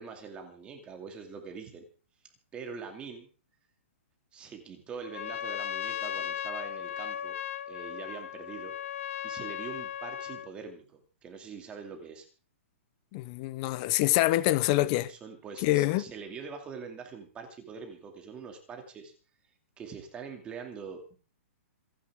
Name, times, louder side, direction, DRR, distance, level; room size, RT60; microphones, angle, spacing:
voice 1, 0.0-1.8 2.5-3.3 4.3-7.4 7.7-8.7 9.2-12.3 14.8-19.1 19.8-21.1, right 5 dB, 15° right, 2.4 m, -43 dB
Trumpet, 5.0-10.5, left 10 dB, 70° left, 1.0 m, -36 dB
voice 2, 13.1-15.1 15.6-16.0, left 17 dB, 30° left, 0.7 m, -25 dB
27.0 x 10.5 x 3.6 m
hypercardioid pair, 165°, 7 cm